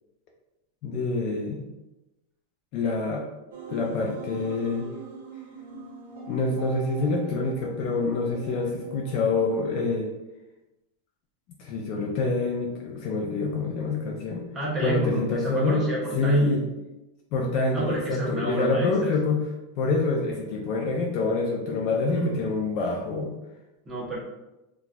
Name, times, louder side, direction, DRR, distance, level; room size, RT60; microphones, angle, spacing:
voice 1, 0.8-1.6 2.7-3.3 3.7-4.9 6.3-10.1 11.6-14.4 14.8-15.8 16.2-16.6 17.3-19.5 19.8-23.3, left 3 dB, 35° left, 0 dB, 0.4 m, -26 dB
sound 1, 3.5-9.8, right 5 dB, 80° right, 0.7 m, -42 dB
voice 2, 14.5-16.5 17.7-19.1 22.2-22.4 23.9-24.2, right 1 dB, 10° right, -6 dB, 0.7 m, -29 dB
4.0 x 2.3 x 2.2 m, 0.98 s
supercardioid pair, 175°, 0 cm